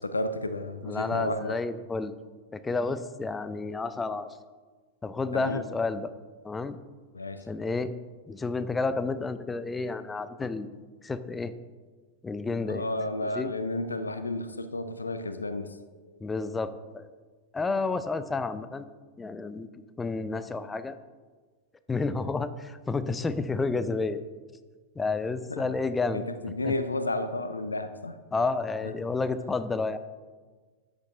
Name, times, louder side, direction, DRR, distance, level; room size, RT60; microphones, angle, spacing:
voice 1, 0.0-1.6 5.3-5.7 7.1-7.4 12.6-15.8 16.0-16.2 25.5-25.6 26.1-28.2 28.8-28.9, left 2 dB, 80° left, 11 dB, 0.6 m, -32 dB
voice 2, 0.9-2.1 2.5-4.3 5.0-6.1 6.4-6.8 7.5-7.9 8.3-10.7 11.0-11.5 12.2-12.8 13.3-13.5 16.2-17.1 17.5-18.9 19.2-19.7 20.0-21.0 21.9-24.2 25.0-26.2 26.6-26.7 28.3-30.0, left 3 dB, 15° left, 13 dB, 0.6 m, -30 dB
13.0 x 8.8 x 3.8 m, 1.4 s
figure-of-eight pair, 90°, 0 cm